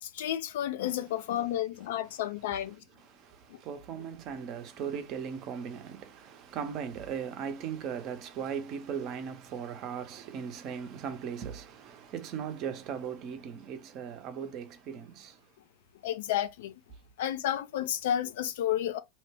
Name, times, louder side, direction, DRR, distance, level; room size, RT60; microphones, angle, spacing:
voice 1, 0.0-2.8 3.5-3.6 16.0-16.7 17.2-19.0, left 11 dB, 70° left, 0.3 m, -31 dB
voice 2, 3.0-15.4, right 7 dB, 45° right, 0.7 m, -38 dB
2.7 x 2.1 x 3.3 m
hypercardioid pair, 90°, 0 cm